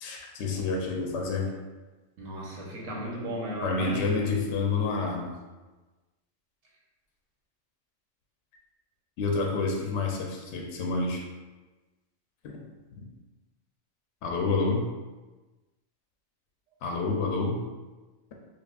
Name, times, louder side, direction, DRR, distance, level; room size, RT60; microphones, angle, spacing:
voice 1, 0.0-1.5 3.6-5.3 9.2-11.2 12.4-12.6 14.2-14.9 16.8-17.6, left 4 dB, 65° left, 0 dB, 0.8 m, -28 dB
voice 2, 2.2-4.4, right 1 dB, 80° right, -4 dB, 1.2 m, -35 dB
5.3 x 2.3 x 2.3 m, 1.2 s
omnidirectional pair, 1.3 m